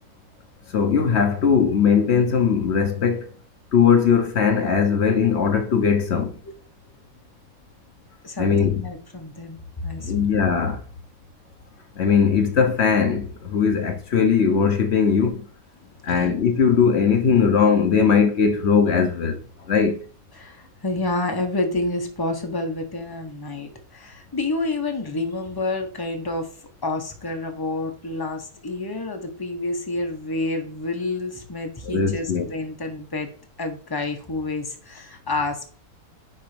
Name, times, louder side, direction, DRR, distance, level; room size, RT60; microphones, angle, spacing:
voice 1, 0.7-3.3 3.7-6.4 8.4-8.8 10.0-10.8 12.0-15.5 16.0-20.0 31.8-32.5, left 6 dB, 55° left, 0.7 m, -19 dB
voice 2, 8.2-10.2 15.9-16.2 20.3-26.5 26.8-33.3 33.6-35.7, left 2 dB, 15° left, 0.8 m, -29 dB
10.0 x 3.4 x 3.3 m
omnidirectional pair, 1.9 m